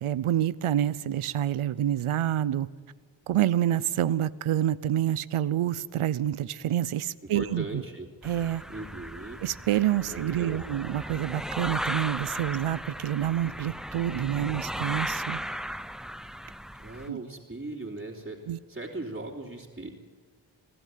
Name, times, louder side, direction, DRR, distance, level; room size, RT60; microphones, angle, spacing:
voice 1, 0.0-2.7 3.3-7.8 8.2-8.6 9.4-15.4 17.1-17.2 18.5-18.6, right 11 dB, 85° right, 0.8 m, -27 dB
voice 2, 7.3-8.1 8.7-9.4 10.1-10.7 16.8-18.4 18.7-19.9, right 2 dB, 20° right, 3.5 m, -38 dB
sound 1, 8.2-17.1, equal, ahead, 0.9 m, -36 dB
27.0 x 12.5 x 9.4 m
cardioid pair, 50°, 49 cm